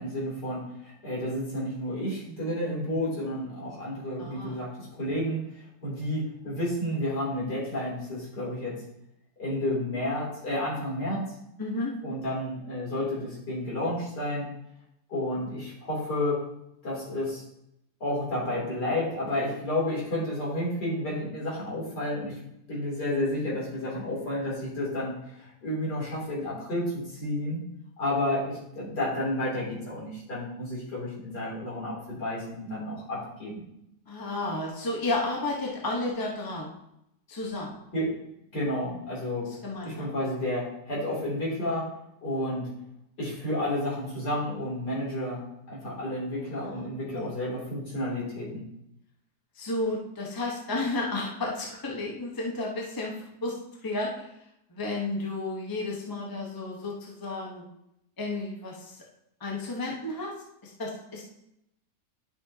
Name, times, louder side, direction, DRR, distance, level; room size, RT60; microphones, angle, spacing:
voice 1, 0.0-5.4 5.8-8.7 9.4-11.2 12.0-14.5 15.1-16.4 16.8-17.4 18.0-22.4 22.7-27.6 28.0-33.6 37.9-38.1 38.5-39.5 39.8-41.9 42.2-42.7 43.2-48.7, left 1 dB, 70° left, -6 dB, 3.9 m, -31 dB
voice 2, 4.2-4.6 11.6-11.9 34.1-36.7 37.3-37.8 39.6-40.1 46.6-46.8 47.1-47.3 49.5-54.3 54.7-57.6 58.2-59.0 59.4-61.2, left 2 dB, 15° left, -2 dB, 1.0 m, -32 dB
11.0 x 6.3 x 2.9 m, 0.81 s
omnidirectional pair, 1.8 m